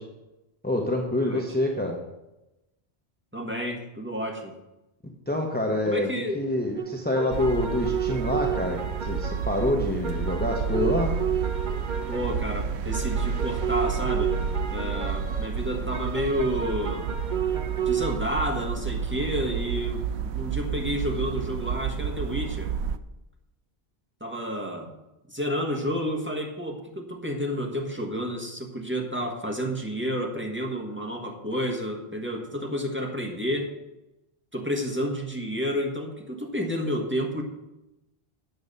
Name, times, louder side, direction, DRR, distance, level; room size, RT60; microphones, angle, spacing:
voice 1, 0.6-2.0 5.3-11.1, left 1 dB, 10° left, 0 dB, 1.0 m, -27 dB
voice 2, 3.3-4.5 5.8-6.4 12.1-14.4 14.7-17.1 17.8-22.7 24.2-24.9 25.3-33.7 34.5-37.4, equal, 10° right, 0 dB, 1.5 m, -30 dB
sound 1, 6.8-18.2, right 8 dB, 50° right, 0.9 m, -32 dB
sound 2, 7.3-23.0, right 7 dB, 80° right, 0.9 m, -30 dB
9.3 x 7.0 x 6.7 m, 0.97 s
omnidirectional pair, 1.1 m